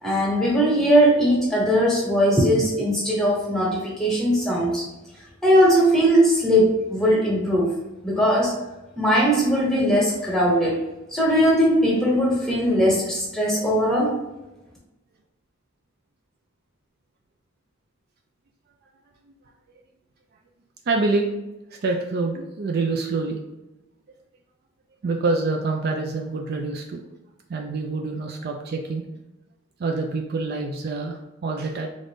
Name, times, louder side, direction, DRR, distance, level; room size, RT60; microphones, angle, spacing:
voice 1, 0.0-4.8 5.4-7.7 8.0-8.5 9.0-10.8 11.1-14.2, equal, 5° left, -5 dB, 1.0 m, -19 dB
voice 2, 20.9-21.3 21.8-23.4 25.0-27.0 27.5-29.0 29.8-31.9, right 3 dB, 50° right, 2 dB, 0.4 m, -26 dB
3.8 x 2.5 x 3.5 m, 1.0 s
head